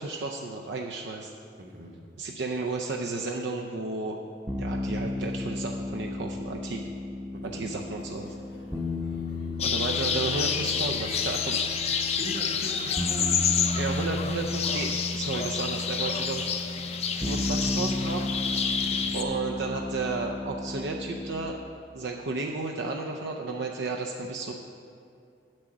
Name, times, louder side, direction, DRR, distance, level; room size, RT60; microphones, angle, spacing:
voice 1, 0.0-1.3 2.2-4.2 4.6-6.8 7.4-8.3 9.6-11.6 13.8-16.5 17.1-18.3 19.1-21.6 21.9-24.5, right 3 dB, 80° right, 2 dB, 0.5 m, -33 dB
voice 2, 1.6-2.0 7.3-7.7 12.1-13.5 18.7-19.0, right 1 dB, 55° right, 1 dB, 1.2 m, -40 dB
sound 1, 4.5-21.5, left 2 dB, 10° right, 0.7 m, -34 dB
sound 2, 7.9-20.7, left 1 dB, 75° left, 1.4 m, -52 dB
sound 3, 9.6-19.2, left 6 dB, 35° left, 0.5 m, -29 dB
7.7 x 7.6 x 5.9 m, 2.5 s
head